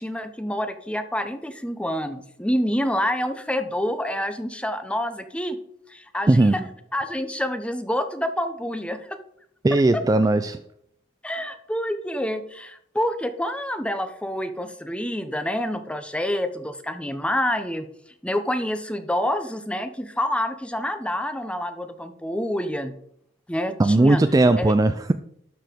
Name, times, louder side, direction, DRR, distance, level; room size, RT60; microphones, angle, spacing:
voice 1, 0.0-5.6 5.9-6.6 6.9-9.2 9.9-10.0 11.2-17.9 18.2-22.9 23.5-24.2 24.6-24.7, equal, 5° left, 0.7 m, -27 dB
voice 2, 6.3-6.6 9.6-10.6 23.8-25.1, right 2 dB, 20° right, 0.3 m, -18 dB
12.0 x 4.8 x 5.0 m
head